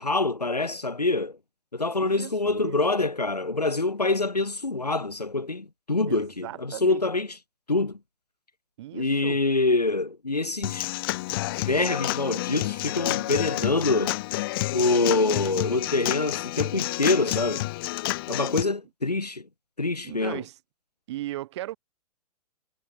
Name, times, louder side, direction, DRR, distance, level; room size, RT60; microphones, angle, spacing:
voice 1, 0.0-1.4 1.7-7.3 7.7-8.0 8.9-10.9 11.4-14.1 14.7-17.7 18.3-19.5 19.8-20.4, left 3 dB, 85° left, 3.9 m, -25 dB
voice 2, 2.0-2.8 6.1-7.0 8.8-9.4 20.0-20.5 21.1-21.8, right 15 dB, 45° right, 3.0 m, -37 dB
Human voice / Acoustic guitar / Drum, 10.6-18.6, left 19 dB, 35° left, 0.7 m, -29 dB
figure-of-eight pair, 115°, 20 cm